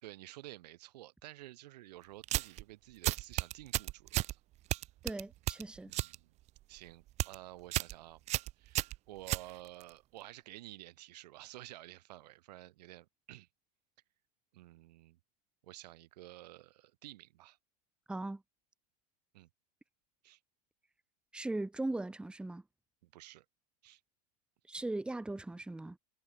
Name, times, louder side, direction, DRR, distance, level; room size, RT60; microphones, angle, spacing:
voice 1, 0.0-4.4 5.8-6.3 6.7-8.2 8.6-13.5 14.5-15.2 15.6-17.6 19.3-19.5 20.2-20.4 23.0-23.5 23.8-24.0, right 16 dB, 75° right, 5.7 m, -52 dB
sound 1, 2.2-2.6 3.0-4.3 4.7-6.2 6.5-6.8 7.1-7.4 7.7-8.0 8.3-9.9, right 16 dB, 30° right, 0.9 m, -34 dB
voice 2, 5.0-5.9 18.1-18.4 21.3-22.6 24.7-26.0, right 2 dB, 5° right, 1.8 m, -38 dB
supercardioid pair, 150°, 21 cm